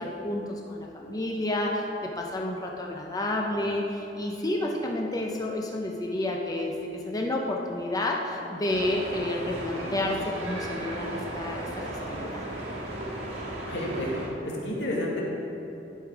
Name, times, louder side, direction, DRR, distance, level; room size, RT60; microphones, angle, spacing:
voice 1, 0.0-12.4, left 1 dB, 20° left, 0 dB, 0.6 m, -30 dB
sound 1, 8.7-14.3, right 1 dB, 70° right, 1.7 m, -35 dB
voice 2, 13.7-14.2 14.4-15.2, left 1 dB, 85° left, -3 dB, 1.7 m, -30 dB
11.0 x 5.1 x 4.7 m, 2.9 s
head